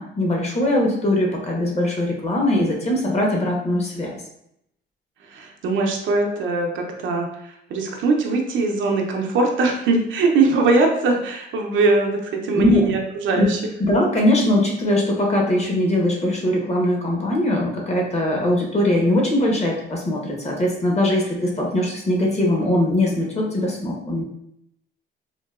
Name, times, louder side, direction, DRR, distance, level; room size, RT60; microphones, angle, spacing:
voice 1, 0.0-4.1 12.5-12.8 13.4-13.5 13.8-24.2, left 1 dB, 35° left, -1 dB, 0.9 m, -21 dB
voice 2, 5.2-13.6, right 3 dB, 75° right, 2 dB, 0.6 m, -21 dB
3.7 x 2.2 x 2.4 m, 0.76 s
cardioid pair, 90°, 20 cm